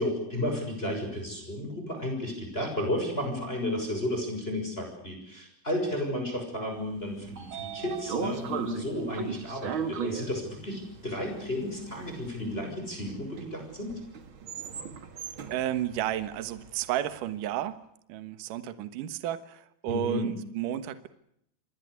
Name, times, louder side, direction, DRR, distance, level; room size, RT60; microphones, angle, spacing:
voice 1, 0.0-14.0 19.9-20.3, left 1 dB, 15° left, 3 dB, 6.5 m, -33 dB
Train / Sliding door, 6.9-17.1, right 6 dB, 45° right, 2.0 m, -38 dB
voice 2, 15.5-17.8 18.1-21.1, right 11 dB, 65° right, 12 dB, 2.7 m, -32 dB
27.5 x 20.5 x 8.3 m, 0.73 s
omnidirectional pair, 4.4 m